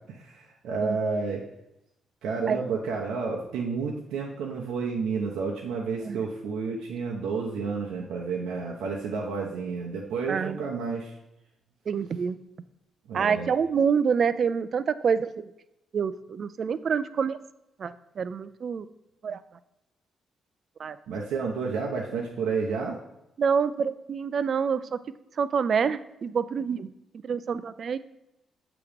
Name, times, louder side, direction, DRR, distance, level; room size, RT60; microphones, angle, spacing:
voice 1, 0.0-1.4 2.2-11.1 13.1-13.5 21.1-23.0, right 4 dB, 80° right, -2 dB, 0.7 m, -30 dB
voice 2, 11.9-12.4 13.1-15.5 15.9-17.4 17.8-18.9 19.2-19.4 20.8-21.0 23.4-25.0 25.4-26.9 27.2-28.0, right 6 dB, 55° right, 14 dB, 0.3 m, -27 dB
6.9 x 3.0 x 5.0 m, 0.87 s
supercardioid pair, 60°, 0 cm